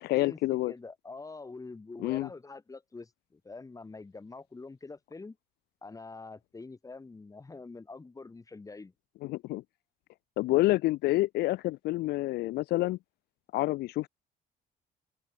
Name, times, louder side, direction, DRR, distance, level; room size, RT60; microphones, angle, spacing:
voice 1, 0.0-0.7 2.0-2.3 9.2-9.6 10.4-13.0 13.5-14.1, left 18 dB, 75° left, 0.6 m, -28 dB
voice 2, 0.7-5.4 5.8-8.9, left 3 dB, 20° left, 7.6 m, -45 dB
cardioid pair, 110°, 17 cm